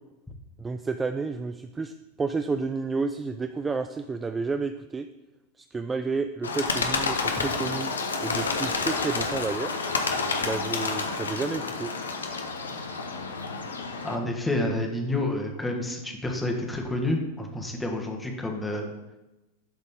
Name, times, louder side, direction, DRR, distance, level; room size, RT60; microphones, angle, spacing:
voice 1, 0.6-5.1 5.6-7.9 8.2-9.7 10.4-11.9, right 4 dB, 15° right, 8 dB, 0.3 m, -31 dB
Bird, 6.4-14.2, left 4 dB, 70° left, 0.8 m, -29 dB
voice 2, 14.0-18.9, left 1 dB, 5° left, 1 dB, 1.2 m, -29 dB
11.0 x 4.0 x 3.6 m, 1.0 s
figure-of-eight pair, 90°, 0 cm